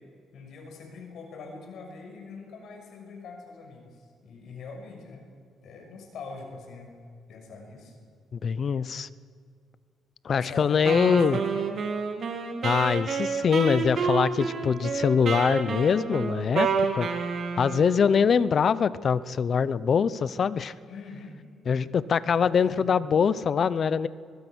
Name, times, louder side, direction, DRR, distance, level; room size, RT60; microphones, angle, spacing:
voice 1, 0.3-5.3 5.6-6.9 7.3-8.0 10.3-11.7 20.9-21.3 22.3-22.9, left 4 dB, 70° left, 3 dB, 6.1 m, -43 dB
voice 2, 8.3-9.1 10.2-11.4 12.6-17.1 17.6-20.7 21.7-24.1, left 6 dB, 50° left, 17 dB, 0.8 m, -23 dB
Wind instrument woodwind instrument, 10.9-18.0, right 5 dB, 55° right, 3.0 m, -29 dB
23.5 x 21.0 x 6.3 m, 2.2 s
cardioid pair, 90°, 0 cm